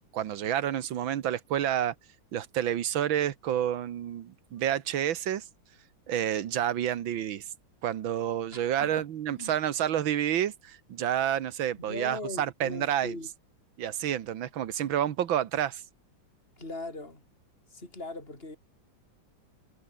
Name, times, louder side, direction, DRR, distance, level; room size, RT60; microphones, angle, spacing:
voice 1, 0.1-1.9 2.3-5.5 6.1-7.4 7.8-13.1 13.8-15.8, right 10 dB, 85° right, 1.9 m, -29 dB
voice 2, 8.5-9.5 11.8-13.3 16.6-17.2 17.7-18.6, left 2 dB, 30° left, 6.1 m, -40 dB
omnidirectional pair, 2.1 m